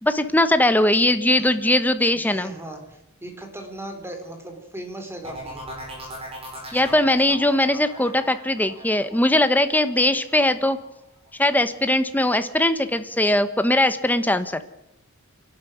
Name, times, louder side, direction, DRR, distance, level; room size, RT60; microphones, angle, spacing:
voice 1, 0.0-2.5 6.7-10.8 11.4-14.6, left 1 dB, 10° left, 11 dB, 1.2 m, -20 dB
voice 2, 2.3-5.6, right 1 dB, 10° right, 4 dB, 3.7 m, -37 dB
sound 1, 5.2-10.9 11.3-11.7, right 1 dB, 30° right, 7.4 m, -39 dB
26.0 x 12.0 x 9.4 m, 0.84 s
head